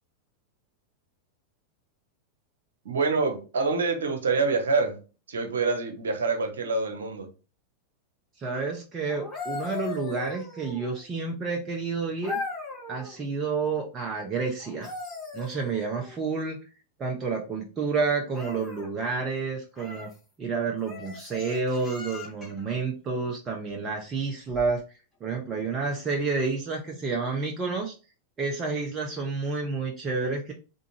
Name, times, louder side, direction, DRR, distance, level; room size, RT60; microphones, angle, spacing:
voice 1, 2.8-5.0 5.3-7.3, right 4 dB, 65° right, 1.1 m, -26 dB
voice 2, 8.4-12.4 12.9-14.9 15.3-16.6 17.0-20.1 20.4-24.8 25.2-27.9 28.4-30.5, right 4 dB, 25° right, 0.9 m, -29 dB
sound 1, 9.1-11.1 12.2-13.2 14.6-16.2 18.3-18.9 19.7-20.2 20.8-22.6 24.5-24.7, left 3 dB, 10° left, 2.4 m, -38 dB
3.9 x 3.6 x 2.9 m
figure-of-eight pair, 90°, 0 cm